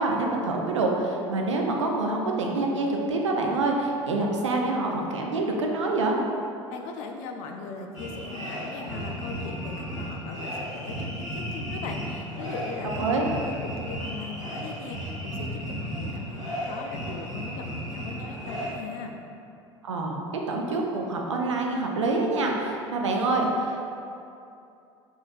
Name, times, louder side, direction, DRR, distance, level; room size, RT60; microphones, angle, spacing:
voice 1, 0.0-6.2 13.0-13.2 19.8-20.2 20.5-23.8, right 2 dB, 80° right, 1 dB, 0.5 m, -26 dB
voice 2, 6.7-19.1, left 4 dB, 55° left, 3 dB, 0.5 m, -39 dB
sound 1, 7.9-18.7, equal, 90° left, 1.2 m, -34 dB
5.0 x 3.8 x 2.5 m, 2.6 s
figure-of-eight pair, 70°, 15 cm